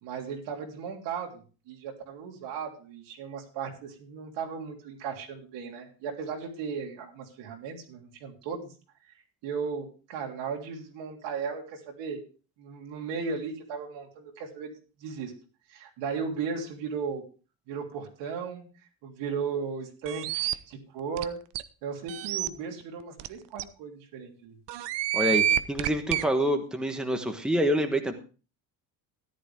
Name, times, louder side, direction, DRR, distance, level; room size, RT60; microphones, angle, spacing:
voice 1, 0.0-8.7 9.4-12.2 12.6-14.7 15.0-15.3 15.7-17.2 17.7-18.7 19.0-21.4 21.8-24.6, right 6 dB, 90° right, 1 dB, 3.4 m, -36 dB
sound 1, 20.1-20.5 21.2-21.3 21.5-21.6 22.1-22.5 23.2-23.3 23.6-23.7 24.7-26.2, right 11 dB, 70° right, 0.8 m, -27 dB
voice 2, 25.7-28.1, equal, ahead, 5 dB, 1.2 m, -26 dB
13.5 x 11.0 x 3.5 m, 0.35 s
cardioid pair, 145°, 43 cm